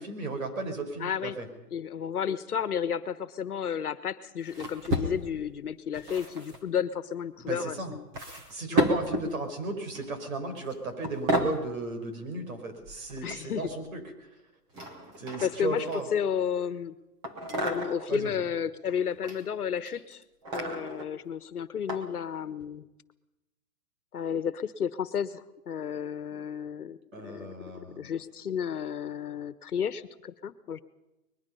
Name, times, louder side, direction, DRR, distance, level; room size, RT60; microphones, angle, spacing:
voice 1, 0.0-1.5 7.5-7.9 8.5-14.0 15.2-16.1 18.1-18.4 27.1-28.1, right 3 dB, 60° right, 6 dB, 5.5 m, -35 dB
voice 2, 1.0-1.3 1.7-8.1 8.7-8.8 13.2-13.7 15.4-15.8 16.1-16.9 17.6-20.2 20.5-22.9 24.1-27.0 27.2-27.5 28.0-30.8, left 8 dB, 70° left, 14 dB, 1.4 m, -32 dB
sound 1, 4.5-5.5 5.9-6.6 7.4-7.6 8.1-9.3 9.9-10.2 10.6-10.7 11.0-11.6 12.8-13.7 14.7-16.3 17.2-18.1 18.8-19.4 19.8-21.1 21.9-22.0 22.6-22.7, equal, 10° right, 0.8 m, -32 dB
22.5 x 21.0 x 5.6 m, 0.96 s
hypercardioid pair, 160°, 46 cm